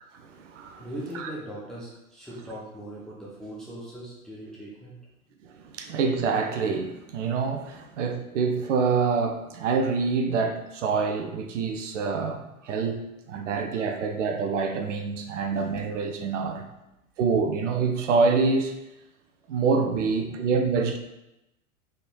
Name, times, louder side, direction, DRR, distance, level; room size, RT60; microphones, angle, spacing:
voice 1, 0.1-0.9 1.1-1.3 5.4-16.6 17.2-18.8 19.5-21.0, right 4 dB, 60° right, 5 dB, 0.5 m, -26 dB
voice 2, 0.8-5.1 12.6-12.7 20.3-20.4, right 1 dB, ahead, -6 dB, 0.4 m, -40 dB
4.2 x 3.4 x 2.2 m, 0.92 s
figure-of-eight pair, 95°, 43 cm